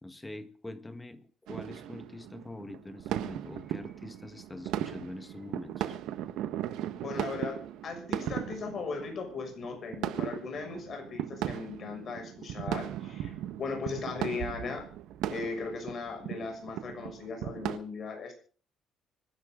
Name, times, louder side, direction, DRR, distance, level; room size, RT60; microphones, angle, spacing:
voice 1, 0.0-6.0, left 2 dB, 10° left, 10 dB, 1.5 m, -44 dB
sound 1, 1.5-17.8, right 12 dB, 85° right, 1.4 m, -37 dB
voice 2, 6.9-14.8 15.3-18.3, left 4 dB, 40° left, 4 dB, 6.6 m, -38 dB
25.5 x 11.5 x 3.8 m, 0.41 s
cardioid pair, 150°, 0 cm